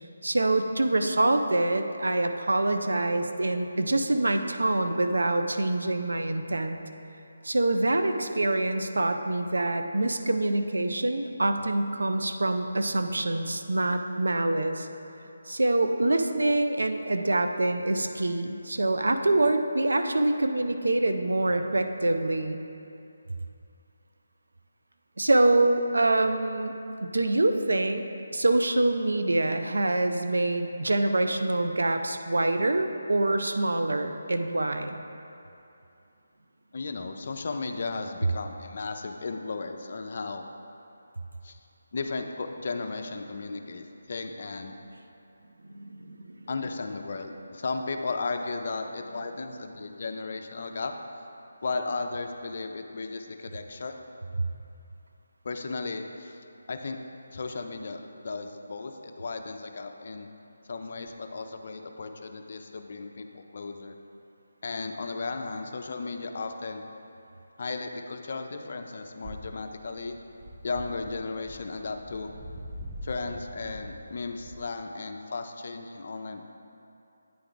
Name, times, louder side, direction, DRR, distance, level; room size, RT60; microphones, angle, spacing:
voice 1, 0.2-6.8 7.4-14.9 15.5-22.6 25.2-26.8 27.0-28.0 28.3-35.0 45.7-46.4, right 2 dB, 90° right, 7 dB, 0.4 m, -25 dB
voice 2, 36.7-40.5 41.4-41.6 41.9-44.8 46.5-50.9 51.6-53.9 55.4-57.0 57.3-60.3 60.7-64.0 64.6-66.8 67.6-70.2 70.6-72.3 73.0-76.4, left 3 dB, 50° left, 5 dB, 0.5 m, -35 dB
sound 1, 69.2-74.6, equal, 10° right, 0.5 m, -43 dB
9.1 x 3.4 x 3.9 m, 2.7 s
figure-of-eight pair, 165°, 0 cm